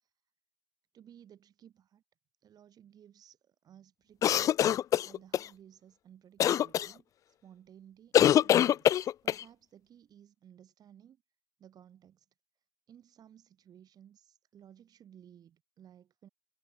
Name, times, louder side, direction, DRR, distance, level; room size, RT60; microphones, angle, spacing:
voice 1, 0.9-2.0 2.4-4.8 5.0-11.2 11.6-12.3 12.9-16.3, right 9 dB, 25° right, 7.0 m, -57 dB
sound 1, 4.2-5.5 6.4-6.9 8.1-9.4, left 11 dB, 20° left, 0.5 m, -24 dB
hypercardioid pair, 125°, 17 cm